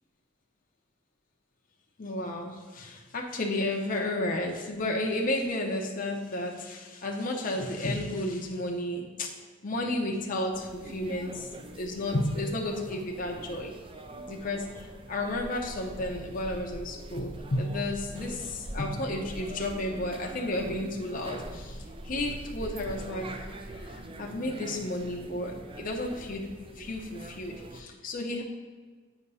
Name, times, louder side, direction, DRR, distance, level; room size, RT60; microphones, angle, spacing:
voice 1, 2.0-9.3 9.6-13.7 14.3-23.5 23.7-28.4, left 1 dB, 45° left, 0 dB, 0.7 m, -32 dB
sound 1, 10.5-27.8, right 1 dB, 25° right, 0.4 m, -43 dB
8.1 x 2.9 x 5.4 m, 1.5 s
head